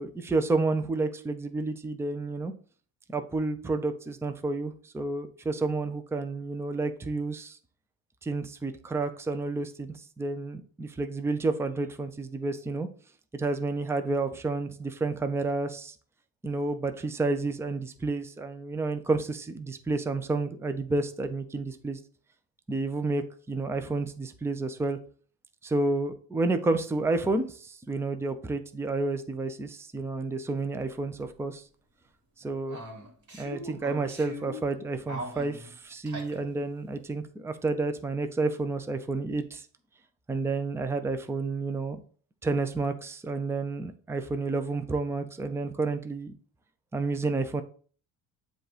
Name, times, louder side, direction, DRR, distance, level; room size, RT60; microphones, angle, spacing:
voice 1, 0.0-2.5 3.1-7.6 8.2-12.9 13.3-15.9 16.4-22.0 22.7-25.0 25.6-31.6 32.4-32.8 33.3-39.7 40.3-42.0 42.4-46.3 46.9-47.6, right 3 dB, 5° right, 8 dB, 0.5 m, -30 dB
sound 1, 30.8-30.9 31.2-31.3 32.7-34.7 35.1-36.4, equal, 40° right, 2.2 m, -41 dB
7.6 x 2.6 x 4.9 m, 0.44 s
supercardioid pair, 85°, 47 cm